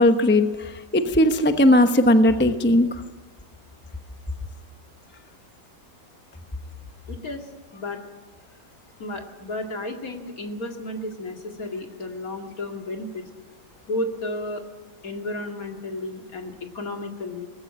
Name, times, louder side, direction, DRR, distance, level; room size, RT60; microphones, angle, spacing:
voice 1, 0.0-2.9, left 1 dB, 10° left, 7 dB, 0.8 m, -18 dB
voice 2, 7.1-7.4 7.7-8.0 9.0-13.2 13.9-14.6 15.0-17.5, left 2 dB, 50° left, 3 dB, 2.6 m, -32 dB
19.5 x 16.0 x 8.7 m, 1.3 s
omnidirectional pair, 2.0 m